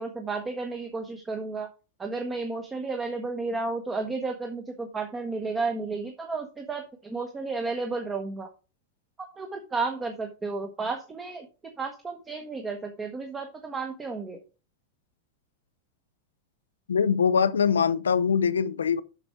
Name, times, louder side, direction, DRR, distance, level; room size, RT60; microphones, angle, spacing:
voice 1, 0.0-1.7 2.0-8.5 9.2-11.5 11.8-14.4, right 3 dB, 15° right, 1.2 m, -32 dB
voice 2, 16.9-19.0, left 6 dB, 70° left, 0.5 m, -23 dB
7.3 x 6.2 x 5.1 m
figure-of-eight pair, 90°, 0 cm